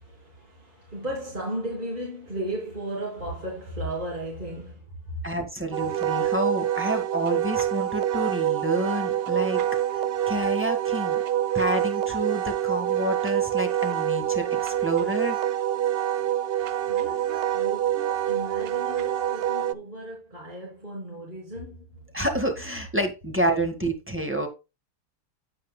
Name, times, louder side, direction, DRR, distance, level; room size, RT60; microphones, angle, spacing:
voice 1, 0.0-5.2 16.9-22.1, right 1 dB, 30° right, 3.4 m, -35 dB
voice 2, 5.2-9.7 9.9-11.2 11.5-15.4 22.1-24.5, right 1 dB, 10° right, 1.6 m, -29 dB
Wind instrument woodwind instrument, 5.7-19.7, right 11 dB, 75° right, 0.5 m, -26 dB
9.6 x 8.8 x 2.2 m
omnidirectional pair, 1.6 m